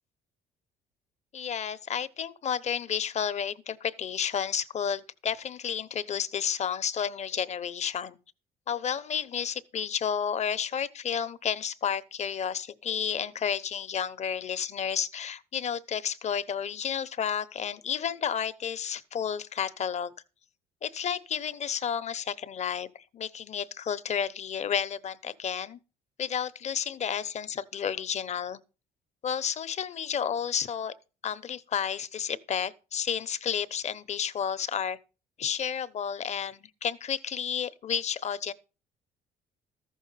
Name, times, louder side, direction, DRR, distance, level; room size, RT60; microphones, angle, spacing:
voice 1, 1.3-8.2 8.7-20.1 20.8-25.8 26.2-28.6 29.2-30.9 31.2-35.0 35.4-38.5, left 8 dB, 40° left, 0.9 m, -31 dB
14.0 x 6.4 x 5.7 m
cardioid pair, 110°, 17 cm